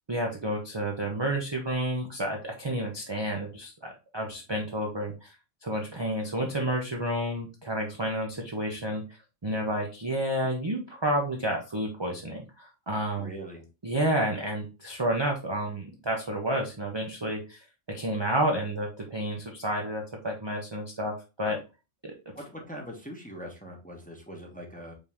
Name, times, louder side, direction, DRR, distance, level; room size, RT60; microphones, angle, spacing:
voice 1, 0.1-5.3 5.6-9.0 9.4-13.3 13.8-21.6 22.0-22.1, right 1 dB, 25° right, 0 dB, 0.6 m, -30 dB
voice 2, 13.2-13.6 22.3-24.9, equal, 5° left, 0 dB, 0.9 m, -42 dB
5.2 x 2.8 x 3.4 m, 0.30 s
omnidirectional pair, 1.3 m